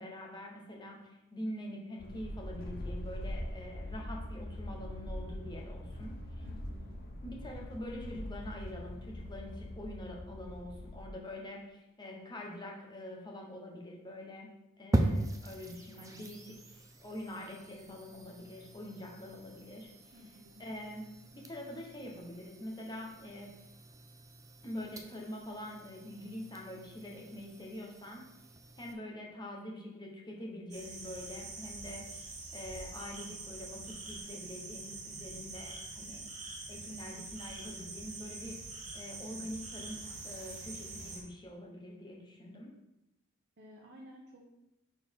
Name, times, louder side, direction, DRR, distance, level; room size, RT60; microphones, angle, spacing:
voice 1, 0.0-6.4 7.2-14.5 14.8-19.9 20.6-23.5 24.6-28.2 28.8-36.2 36.7-38.6 38.9-42.7, left 1 dB, 20° left, -1 dB, 1.1 m, -45 dB
sound 1, 2.0-11.0, left 1 dB, 45° left, 0.7 m, -42 dB
voice 2, 6.4-7.0 20.1-20.6 43.6-44.5, equal, 55° right, -3 dB, 1.0 m, -54 dB
sound 2, 14.9-28.9, right 1 dB, 15° right, 0.5 m, -40 dB
sound 3, 30.7-41.2, right 3 dB, 35° right, 1.2 m, -45 dB
6.2 x 4.3 x 3.8 m, 0.92 s
head